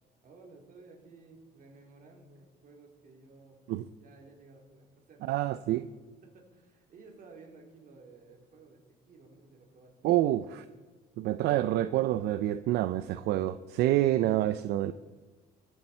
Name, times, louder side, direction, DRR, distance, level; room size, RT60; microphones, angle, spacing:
voice 1, 0.2-3.6 4.0-10.6, right 3 dB, 55° right, 1 dB, 3.6 m, -55 dB
voice 2, 5.2-5.9 10.0-10.6 11.2-14.9, right 14 dB, 75° right, 12 dB, 0.5 m, -27 dB
23.0 x 7.9 x 4.4 m, 1.3 s
cardioid pair, 110°, 17 cm